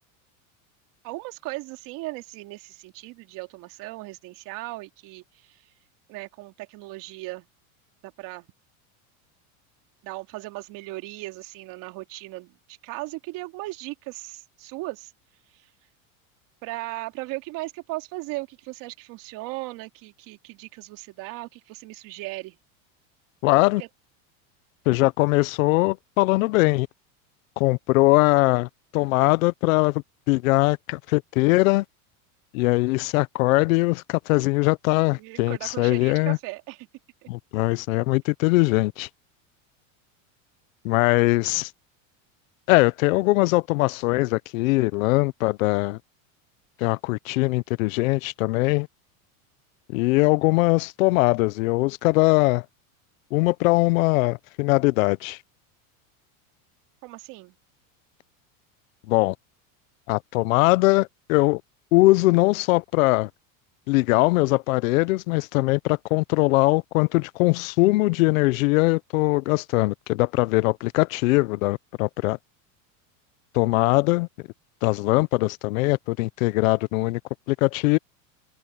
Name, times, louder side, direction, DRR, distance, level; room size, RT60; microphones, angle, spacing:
voice 1, 1.0-5.6 6.1-7.5 8.0-8.5 10.0-15.1 15.5-15.7 16.6-22.6 23.8-23.9 35.2-36.9 37.2-37.3 57.0-57.5, right 21 dB, 50° right, 2.8 m, -37 dB
voice 2, 23.4-23.8 24.9-26.9 27.6-31.8 32.5-36.4 37.3-39.1 40.8-41.7 42.7-46.0 46.8-48.9 49.9-52.6 53.3-55.4 59.1-59.3 60.1-61.6 61.9-63.3 63.9-72.4 73.5-74.3 74.8-77.2 77.5-78.0, left 22 dB, 75° left, 0.8 m, -21 dB
open air
supercardioid pair, 145°, 42 cm